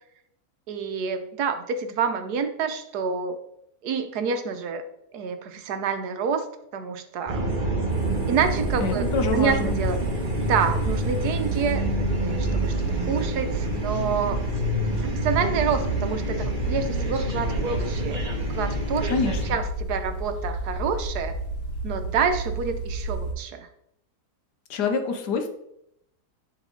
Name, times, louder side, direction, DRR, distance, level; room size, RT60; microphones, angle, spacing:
voice 1, 0.7-3.4 3.8-4.8 5.1-6.5 6.7-7.5 8.3-10.0 10.5-11.8 12.2-14.4 15.0-18.2 18.5-19.1 19.5-21.4 21.8-23.7, right 6 dB, 75° right, 8 dB, 1.3 m, -28 dB
sound 1, 7.3-19.5, right 1 dB, 35° right, 1.2 m, -27 dB
sound 2, 7.9-23.3, right 1 dB, 40° left, 2.0 m, -33 dB
voice 2, 8.8-9.8 19.1-19.6 24.7-25.5, left 4 dB, 80° left, 6 dB, 1.5 m, -26 dB
10.5 x 4.2 x 3.8 m, 0.76 s
omnidirectional pair, 1.8 m